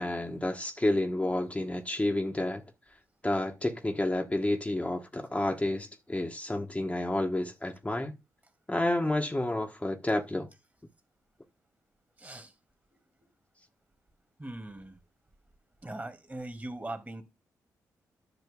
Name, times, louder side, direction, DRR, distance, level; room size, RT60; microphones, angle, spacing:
voice 1, 0.0-2.6 3.2-8.2 8.7-10.5, left 1 dB, 15° left, 1.5 m, -30 dB
voice 2, 12.2-12.5 14.4-15.0 15.8-17.2, right 2 dB, 20° right, 2.7 m, -40 dB
10.5 x 5.9 x 3.8 m
hypercardioid pair, 40°, 8 cm